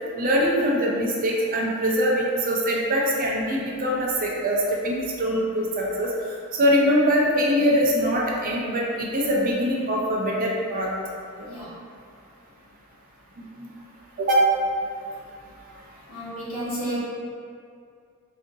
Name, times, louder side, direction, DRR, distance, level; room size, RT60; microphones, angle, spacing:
voice 1, 0.2-6.1 6.5-10.9 11.4-11.5 13.5-13.7 14.2-14.5, equal, 40° right, -3 dB, 0.5 m, -23 dB
voice 2, 16.1-17.0, right 1 dB, 65° left, -7 dB, 1.0 m, -31 dB
3.8 x 2.4 x 2.6 m, 2.3 s
head